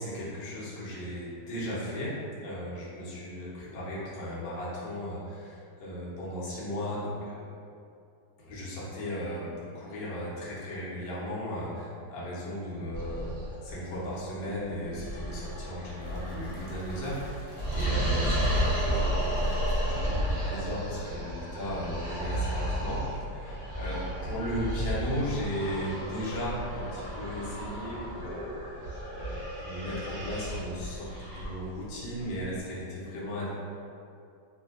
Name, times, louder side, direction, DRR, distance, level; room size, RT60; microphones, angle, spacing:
voice 1, 0.0-7.4 8.4-13.3 13.6-19.5 19.8-28.5 29.1-33.5, equal, 65° left, -7 dB, 1.2 m, -36 dB
sound 1, 12.9-32.6, equal, 40° right, 0.7 m, -33 dB
Crackle, 16.0-21.0, equal, 85° left, 0.7 m, -50 dB
3.2 x 2.6 x 2.4 m, 2.4 s
omnidirectional pair, 2.4 m